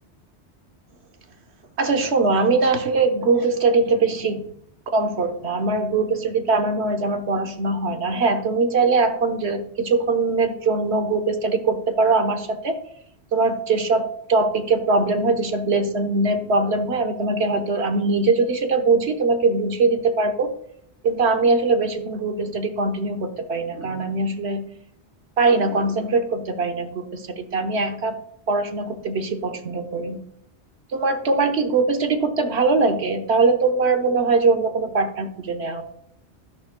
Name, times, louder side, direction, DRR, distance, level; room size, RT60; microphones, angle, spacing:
voice 1, 1.8-4.5 4.9-12.8 13.3-20.5 21.0-24.6 25.4-28.2 28.5-30.2 30.9-35.8, right 3 dB, 75° right, 6 dB, 1.3 m, -21 dB
13.0 x 10.5 x 2.2 m, 0.70 s
omnidirectional pair, 1.1 m